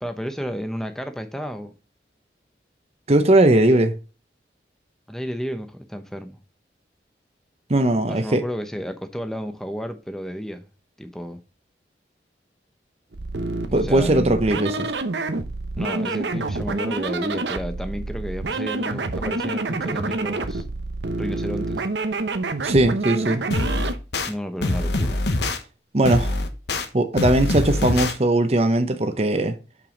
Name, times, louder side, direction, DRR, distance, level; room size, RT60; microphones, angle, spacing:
voice 1, 0.0-1.7 3.5-3.6 5.1-6.4 8.0-10.6 11.0-11.4 13.4-14.4 15.8-20.6 21.2-21.8 24.3-25.2, equal, 5° left, 0.8 m, -32 dB
voice 2, 3.1-3.9 7.7-8.4 13.7-14.9 22.6-23.4 25.9-26.4 26.9-29.5, right 1 dB, 35° right, 0.7 m, -19 dB
sound 1, 13.1-24.0, right 3 dB, 85° right, 0.9 m, -28 dB
sound 2, 23.5-24.3 24.6-25.6 26.0-26.9 27.2-28.1, left 2 dB, 75° left, 1.1 m, -24 dB
6.8 x 5.9 x 3.9 m
head